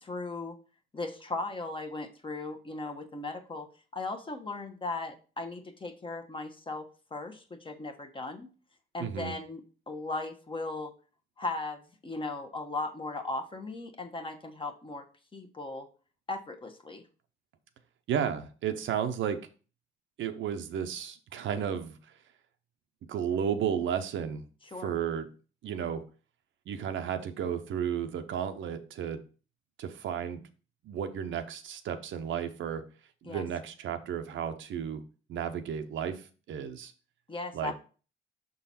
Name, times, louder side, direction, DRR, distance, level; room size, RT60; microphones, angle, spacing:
voice 1, 0.0-0.6 0.9-3.7 3.9-6.9 7.1-8.5 8.9-9.6 9.9-10.9 11.4-15.0 15.3-15.9 16.3-17.0 24.7-24.9 33.2-33.4 37.3-37.8, left 3 dB, 25° left, 6 dB, 1.1 m, -37 dB
voice 2, 9.0-9.3 18.1-19.4 20.2-21.9 23.1-24.4 24.8-25.3 25.6-26.0 26.7-29.2 29.8-30.4 30.8-32.8 33.2-35.0 35.3-36.9 37.5-37.7, right 8 dB, 75° right, 8 dB, 0.8 m, -33 dB
6.1 x 3.9 x 4.3 m, 0.37 s
cardioid pair, 90°, 20 cm